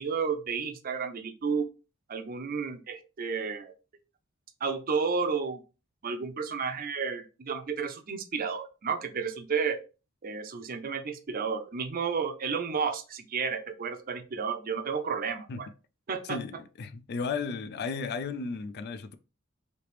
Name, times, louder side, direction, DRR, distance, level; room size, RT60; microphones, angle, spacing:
voice 1, 0.0-1.7 2.1-3.7 4.6-5.6 6.0-9.8 10.2-15.7 16.1-16.4, right 5 dB, 45° right, 0.5 m, -32 dB
voice 2, 16.2-19.2, left 5 dB, 50° left, 0.4 m, -34 dB
3.3 x 2.9 x 3.1 m
head